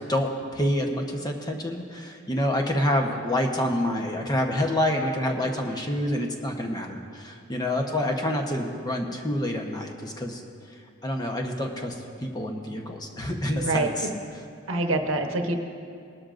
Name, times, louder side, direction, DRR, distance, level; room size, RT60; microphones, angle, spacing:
voice 1, 0.1-10.4 11.0-11.9 12.2-14.1, left 1 dB, 20° left, 2 dB, 1.0 m, -27 dB
voice 2, 13.6-13.9 14.7-15.5, right 2 dB, 70° right, 4 dB, 1.0 m, -25 dB
19.5 x 12.5 x 2.6 m, 2.3 s
head